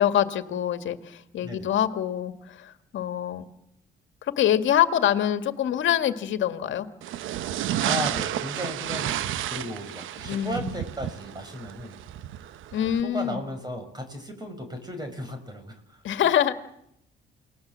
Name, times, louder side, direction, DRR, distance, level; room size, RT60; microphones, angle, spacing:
voice 1, 0.0-3.5 4.2-6.9 10.2-10.8 12.7-13.4 16.0-16.5, left 10 dB, 75° left, 9 dB, 1.9 m, -25 dB
voice 2, 1.4-1.7 7.8-12.0 12.8-16.0, equal, 20° right, 6 dB, 6.3 m, -35 dB
sound 1, 7.0-13.0, right 12 dB, 85° right, 0.9 m, -31 dB
29.0 x 20.0 x 7.5 m, 0.77 s
cardioid pair, 90°, 20 cm